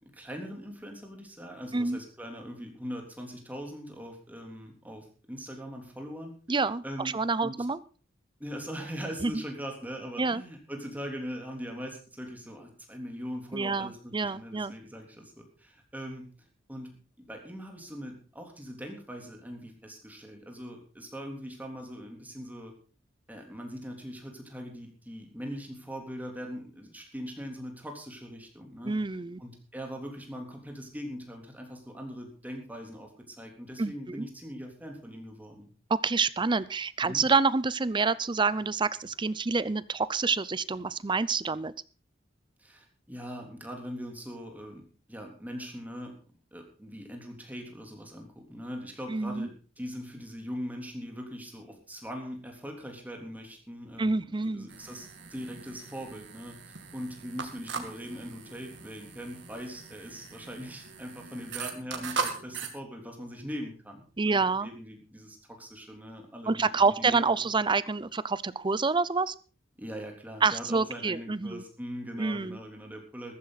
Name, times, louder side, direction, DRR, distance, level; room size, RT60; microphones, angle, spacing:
voice 1, 0.1-6.3 6.8-7.6 8.4-16.3 16.7-22.7 23.3-29.0 29.4-35.7 37.0-37.2 42.6-44.8 45.1-46.2 46.5-67.5 69.8-73.3, equal, 10° right, 1 dB, 3.4 m, -41 dB
voice 2, 6.5-6.8 7.1-7.8 9.2-9.4 10.2-10.4 13.5-14.7 28.8-29.4 33.8-34.3 35.9-41.7 49.1-49.5 54.0-54.7 64.2-64.7 66.5-69.3 70.4-71.6 72.2-72.6, right 4 dB, 25° right, 18 dB, 0.6 m, -27 dB
sound 1, 54.7-62.7, right 5 dB, 65° right, 2.4 m, -39 dB
14.5 x 14.5 x 4.1 m, 0.38 s
head